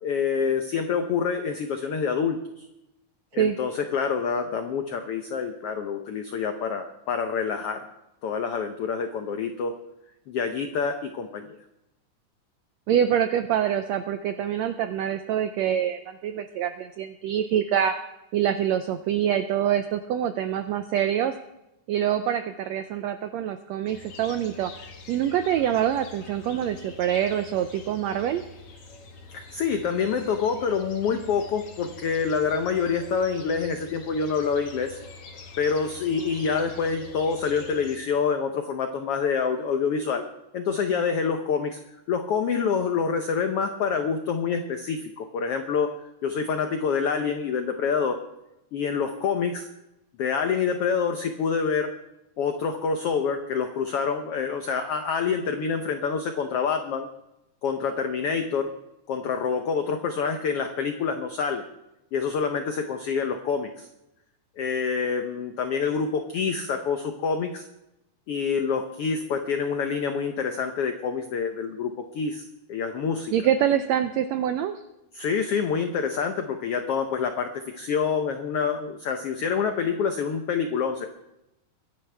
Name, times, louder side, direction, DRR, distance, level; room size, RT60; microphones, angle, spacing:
voice 1, 0.0-2.6 3.3-7.8 8.2-9.7 10.3-11.6 29.3-35.0 35.6-40.2 40.5-41.8 42.1-45.9 46.2-48.2 48.7-49.7 50.2-51.9 52.4-57.1 57.6-58.7 59.1-61.6 62.1-63.9 64.6-67.6 68.3-73.3 75.1-81.1, left 6 dB, 85° left, 6 dB, 1.3 m, -27 dB
voice 2, 12.9-17.9 18.3-21.3 21.9-24.7 25.1-28.4 73.3-74.8, right 10 dB, 85° right, 9 dB, 1.5 m, -25 dB
sound 1, 23.9-38.0, left 3 dB, 50° left, 2.3 m, -45 dB
23.0 x 11.0 x 3.4 m, 0.90 s
omnidirectional pair, 3.8 m